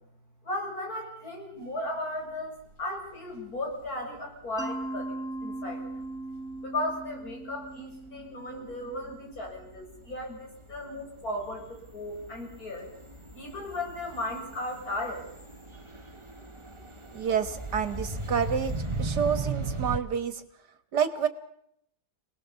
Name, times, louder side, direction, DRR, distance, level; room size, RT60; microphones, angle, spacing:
voice 1, 0.4-2.5 2.8-6.0 6.6-12.9 13.4-15.2, left 1 dB, 60° left, 0 dB, 7.9 m, -36 dB
sound 1, 3.9-4.0 6.0-7.3 7.7-8.3 8.5-20.0, right 2 dB, 20° right, 1.7 m, -37 dB
Mallet percussion, 4.6-9.3, right 2 dB, ahead, 2.1 m, -39 dB
voice 2, 17.1-18.7 19.0-20.4 20.9-21.3, right 7 dB, 80° right, 10 dB, 2.2 m, -28 dB
27.5 x 19.5 x 7.2 m, 0.73 s
omnidirectional pair, 1.7 m